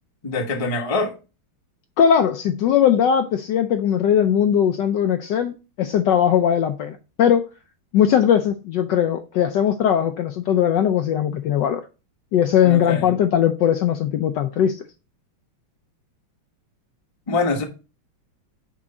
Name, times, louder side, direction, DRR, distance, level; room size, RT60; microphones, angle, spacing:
voice 1, 0.2-1.1 12.6-13.2 17.3-17.6, left 3 dB, 25° left, 0.7 m, -24 dB
voice 2, 2.0-7.5 7.9-11.8 12.3-14.8, left 9 dB, 75° left, 1.1 m, -19 dB
6.1 x 4.8 x 4.2 m
omnidirectional pair, 2.3 m